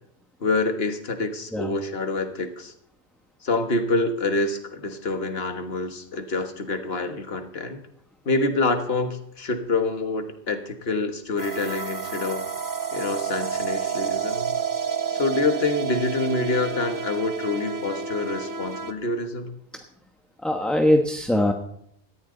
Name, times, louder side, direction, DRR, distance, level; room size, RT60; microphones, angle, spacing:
voice 1, 0.4-2.7 3.4-7.8 8.2-12.5 12.9-14.6 15.1-19.6, left 2 dB, 60° left, 7 dB, 1.7 m, -26 dB
sound 1, 11.4-18.9, right 7 dB, 20° right, 1.1 m, -30 dB
voice 2, 20.4-21.5, left 1 dB, ahead, 4 dB, 1.0 m, -21 dB
18.5 x 14.0 x 3.9 m, 0.71 s
omnidirectional pair, 1.1 m